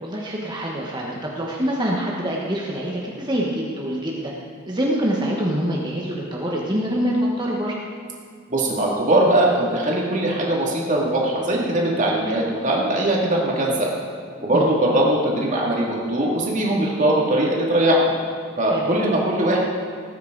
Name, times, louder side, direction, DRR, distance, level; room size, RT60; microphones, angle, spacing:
voice 1, 0.0-4.3 4.7-7.7 14.5-14.7 18.6-18.9, equal, 20° right, -3 dB, 1.2 m, -25 dB
voice 2, 8.5-13.9 14.4-18.0 18.6-19.6, right 1 dB, 35° right, -3 dB, 2.5 m, -20 dB
18.5 x 9.4 x 4.0 m, 2.2 s
head